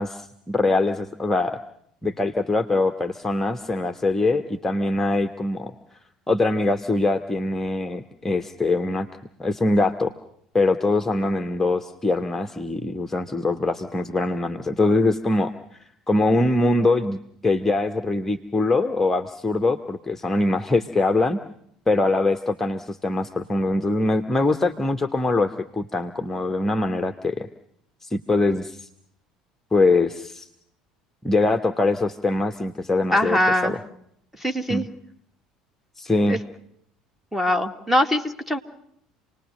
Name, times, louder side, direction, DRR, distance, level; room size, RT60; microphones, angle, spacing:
voice 1, 0.0-1.6 2.0-5.7 6.3-9.1 9.4-10.1 10.5-21.4 21.9-27.5 28.0-28.9 29.7-30.5 31.2-33.8 34.7-34.9 36.0-36.4, left 2 dB, 10° left, 6 dB, 1.3 m, -23 dB
voice 2, 33.1-33.8 34.4-34.9 36.3-36.4 37.3-38.6, left 1 dB, 5° right, 7 dB, 2.2 m, -22 dB
28.5 x 20.0 x 6.4 m, 0.71 s
figure-of-eight pair, 60°, 3 cm